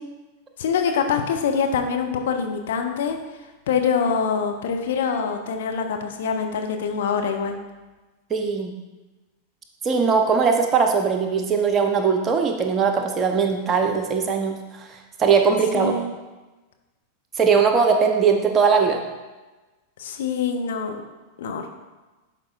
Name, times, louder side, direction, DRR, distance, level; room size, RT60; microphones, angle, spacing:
voice 1, 0.6-3.2 3.7-7.5 15.7-16.1 20.0-21.0 21.4-21.7, left 6 dB, 60° left, 4 dB, 0.8 m, -24 dB
voice 2, 8.3-8.7 9.8-14.6 15.2-15.9 17.4-19.0, right 5 dB, 25° right, 4 dB, 0.9 m, -20 dB
11.0 x 4.8 x 2.5 m, 1.2 s
figure-of-eight pair, 90°, 0 cm